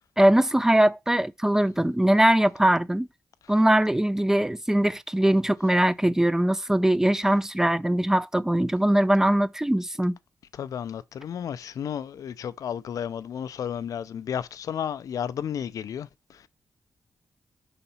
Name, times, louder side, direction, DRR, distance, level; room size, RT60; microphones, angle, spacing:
voice 1, 0.2-3.1 3.5-10.1, right 1 dB, 10° right, 0.5 m, -21 dB
voice 2, 10.6-16.1, left 8 dB, 75° left, 0.5 m, -32 dB
5.7 x 4.0 x 5.6 m
cardioid pair, 70°, 6 cm